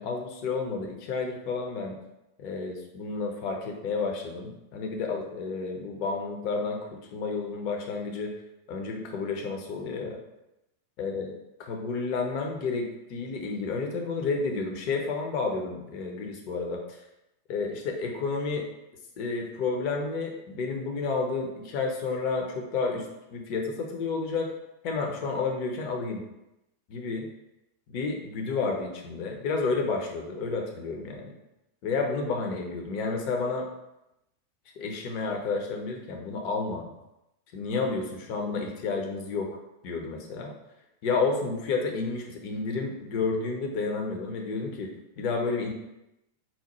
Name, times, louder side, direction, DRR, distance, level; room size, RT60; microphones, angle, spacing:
voice 1, 0.0-2.0 2.4-8.3 8.7-10.2 11.0-11.3 11.6-17.0 17.5-18.7 19.2-24.5 24.8-26.2 26.9-27.3 27.9-31.3 31.8-33.7 34.8-36.8 37.5-39.6 39.8-40.5 41.0-45.7, left 4 dB, 45° left, 2 dB, 0.6 m, -31 dB
4.1 x 2.1 x 2.9 m, 0.90 s
figure-of-eight pair, 90°, 0 cm